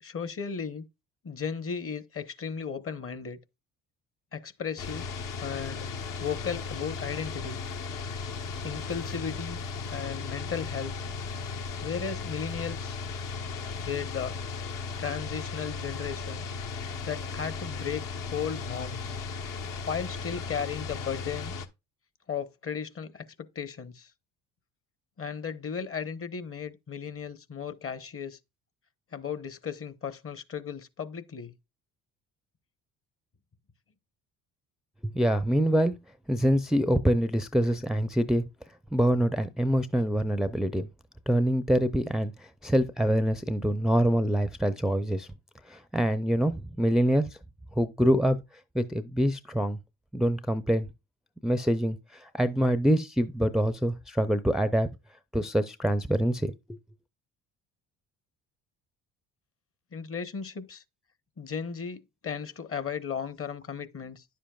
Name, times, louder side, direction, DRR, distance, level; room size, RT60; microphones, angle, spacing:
voice 1, 0.0-0.9 1.2-3.4 4.3-5.1 5.4-5.9 6.2-7.6 8.6-9.6 9.9-10.9 11.8-13.0 13.8-14.4 15.0-16.4 17.0-19.1 19.8-21.5 22.3-23.2 23.5-24.1 25.2-28.4 29.1-31.5 59.9-60.8 61.4-64.2, left 6 dB, 35° left, 1.1 m, -35 dB
sound 1, 4.8-21.7, left 4 dB, 60° left, 1.1 m, -36 dB
voice 2, 35.0-35.9 36.3-38.4 38.9-40.9 41.3-42.3 42.6-45.3 45.7-47.3 47.8-48.4 48.7-49.8 50.1-50.9 51.4-54.9 55.3-56.8, equal, ahead, 0.5 m, -25 dB
10.0 x 7.5 x 2.3 m
hypercardioid pair, 65°, 38 cm